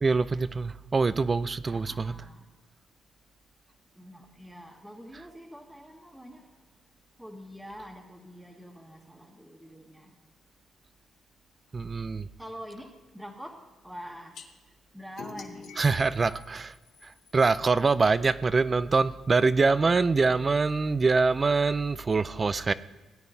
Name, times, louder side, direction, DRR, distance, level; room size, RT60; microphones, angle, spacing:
voice 1, 0.0-2.2 11.7-12.3 15.8-16.7 17.0-22.7, right 4 dB, 30° right, 16 dB, 0.4 m, -24 dB
voice 2, 1.7-2.5 4.0-6.4 7.2-10.1 12.4-13.6 13.8-14.4 14.9-15.7, equal, 5° right, 2 dB, 1.3 m, -45 dB
sound 1, 14.3-14.5 15.2-17.4, left 5 dB, 70° left, 1.1 m, -45 dB
17.0 x 9.6 x 2.7 m, 1.2 s
cardioid pair, 90°, 0 cm